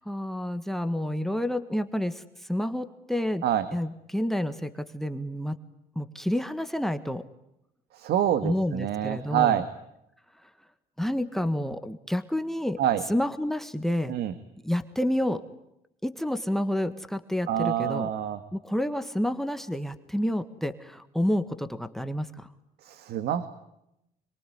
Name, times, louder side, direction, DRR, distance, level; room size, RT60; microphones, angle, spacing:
voice 1, 0.0-3.4 3.7-5.6 5.9-7.2 8.4-9.6 11.0-12.8 13.1-14.1 14.6-15.4 16.0-18.1 18.5-22.5, left 1 dB, ahead, 13 dB, 1.6 m, -29 dB
voice 2, 7.9-9.7 12.8-13.0 14.1-14.3 17.5-18.4 22.8-23.5, right 11 dB, 70° right, 12 dB, 1.9 m, -26 dB
27.0 x 23.5 x 9.4 m, 0.83 s
cardioid pair, 110°, 17 cm